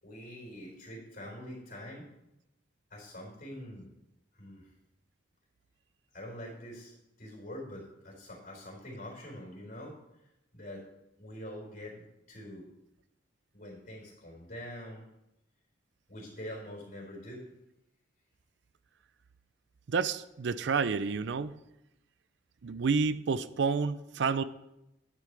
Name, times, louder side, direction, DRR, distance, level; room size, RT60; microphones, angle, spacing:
voice 1, 0.0-2.1 2.9-3.9 4.3-4.7 6.1-10.0 10.5-10.8 11.2-12.7 13.5-15.1 16.1-17.5, equal, 50° left, -1 dB, 4.1 m, -45 dB
voice 2, 19.9-21.5 22.6-24.4, right 5 dB, 65° right, 14 dB, 0.5 m, -29 dB
10.5 x 9.6 x 3.4 m, 0.88 s
head